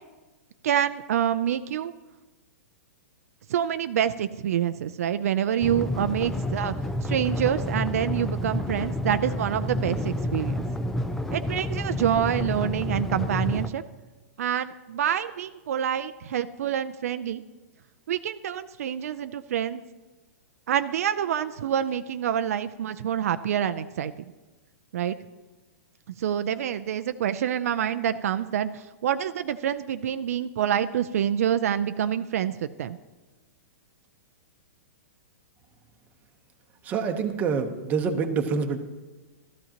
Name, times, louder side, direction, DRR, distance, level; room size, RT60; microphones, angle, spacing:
voice 1, 0.6-1.9 3.5-6.7 7.0-10.6 11.3-13.8 14.4-17.4 18.1-19.8 20.7-24.1 24.9-25.2 26.2-33.0, right 9 dB, 65° right, 10 dB, 0.5 m, -27 dB
sound 1, 5.6-13.7, left 1 dB, 5° left, 0.4 m, -29 dB
voice 2, 36.8-38.8, right 5 dB, 20° right, 5 dB, 0.9 m, -26 dB
15.5 x 13.5 x 2.9 m, 1.2 s
hypercardioid pair, 160°, 9 cm